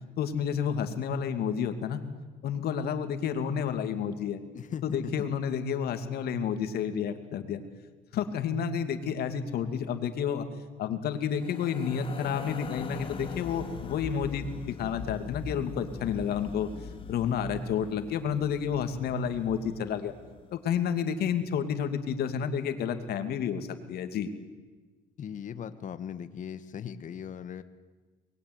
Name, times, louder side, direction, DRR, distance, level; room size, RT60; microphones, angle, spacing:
voice 1, 0.2-2.0 2.4-4.4 4.8-7.6 8.1-10.5 10.8-16.7 17.1-20.1 20.5-24.3, left 7 dB, 70° left, 8 dB, 2.6 m, -30 dB
voice 2, 4.5-5.3 25.2-27.6, left 8 dB, 50° left, 11 dB, 1.6 m, -38 dB
sound 1, 11.3-20.6, left 5 dB, 30° left, 2.3 m, -42 dB
24.0 x 21.0 x 9.6 m, 1.3 s
cardioid pair, 110°, 17 cm